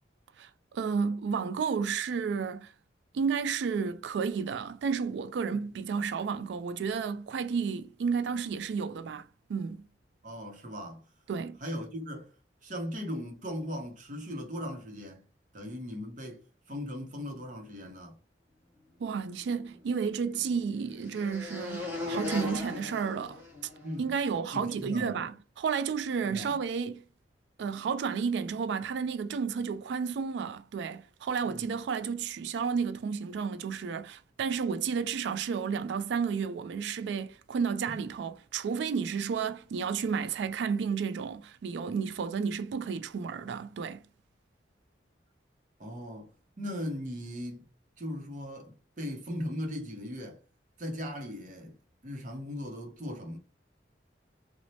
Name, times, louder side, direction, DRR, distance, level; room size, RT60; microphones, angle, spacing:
voice 1, 0.4-2.7 3.1-9.2 9.5-9.8 11.3-11.6 19.0-23.4 24.0-27.0 27.6-44.0, right 6 dB, 70° right, 0.3 m, -32 dB
voice 2, 10.2-11.1 11.6-12.3 12.6-15.2 15.5-18.2 23.8-25.3 26.2-26.6 31.4-31.7 37.9-38.0 45.8-46.3 46.6-47.7 48.0-50.4 50.8-51.8 52.0-53.4, equal, 40° right, 0.7 m, -38 dB
sound 1, 19.4-24.0, left 2 dB, 10° right, 0.8 m, -39 dB
3.1 x 2.0 x 2.7 m
head